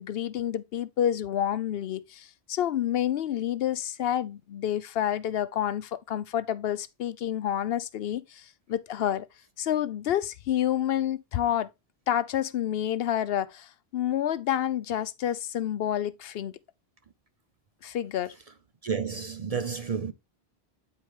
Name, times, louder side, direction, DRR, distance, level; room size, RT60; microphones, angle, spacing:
voice 1, 0.0-9.3 9.6-11.7 12.1-16.5 17.8-18.3, left 10 dB, 70° left, 0.8 m, -29 dB
voice 2, 18.8-20.1, right 6 dB, 45° right, 0.6 m, -31 dB
9.1 x 4.9 x 3.0 m
omnidirectional pair, 1.1 m